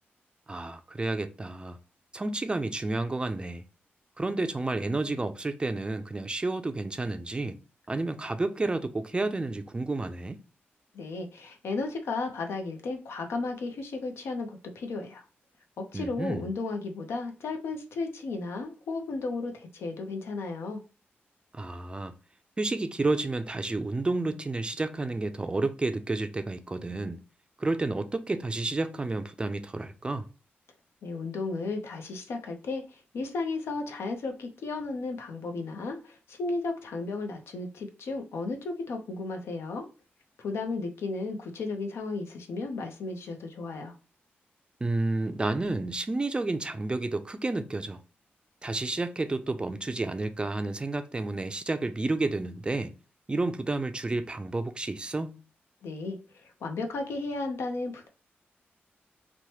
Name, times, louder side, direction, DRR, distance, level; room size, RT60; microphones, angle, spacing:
voice 1, 0.5-1.8 2.1-3.6 4.2-7.6 7.9-10.4 15.9-16.5 21.5-22.2 22.6-27.2 27.6-30.2 44.8-48.0 48.6-52.9 53.3-55.4, right 2 dB, 25° right, 0.3 m, -30 dB
voice 2, 10.9-15.2 15.8-20.8 31.0-32.8 33.1-39.9 40.4-43.9 55.8-56.2 56.6-58.1, left 3 dB, 85° left, 0.5 m, -34 dB
3.0 x 2.1 x 2.8 m
cardioid pair, 80°, 4 cm